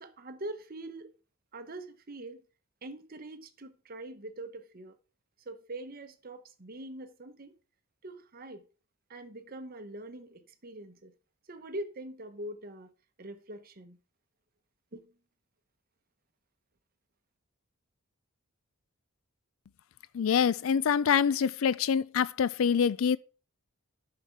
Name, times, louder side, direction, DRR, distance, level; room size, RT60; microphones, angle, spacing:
voice 1, 0.0-1.1 1.5-2.4 2.8-4.9 5.5-7.5 8.0-8.6 9.1-11.1 11.5-12.9 13.2-14.0 14.9-15.1, right 1 dB, 40° right, 0.9 m, -43 dB
voice 2, 20.1-23.2, left 7 dB, 65° left, 0.4 m, -25 dB
10.0 x 5.8 x 4.5 m
head